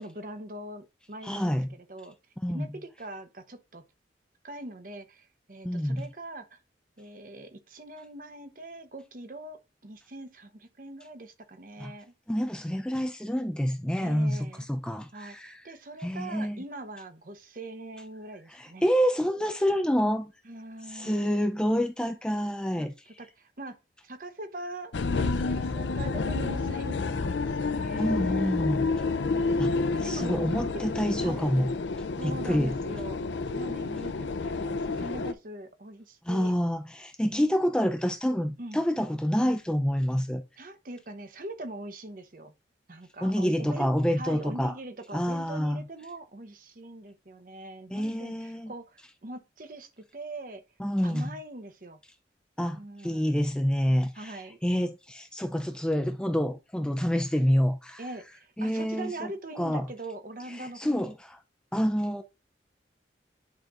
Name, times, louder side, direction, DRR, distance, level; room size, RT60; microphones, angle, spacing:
voice 1, 0.0-2.2 2.5-3.8 4.4-6.6 7.0-12.1 14.0-14.7 15.1-18.9 20.4-21.3 22.7-22.9 23.2-23.8 24.0-28.5 29.3-30.7 31.2-31.5 32.2-33.2 33.5-36.5 38.6-38.8 40.6-42.5 42.9-43.9 44.2-50.6 51.0-52.0 52.7-53.4 54.1-54.6 58.0-61.1, right 1 dB, 50° right, 0.9 m, -42 dB
voice 2, 1.2-1.7 2.4-2.7 5.6-6.0 11.8-11.9 12.3-15.6 16.0-16.6 18.5-20.3 20.9-22.9 28.0-28.9 29.6-31.7 32.2-32.8 36.2-40.4 43.2-44.7 45.1-45.9 47.9-48.7 50.8-51.3 52.6-58.0 58.6-59.3 59.6-59.9 60.6-61.4 61.7-62.2, equal, 5° left, 0.4 m, -27 dB
sound 1, 24.9-35.3, left 3 dB, 85° left, 0.6 m, -29 dB
10.5 x 4.3 x 2.5 m
head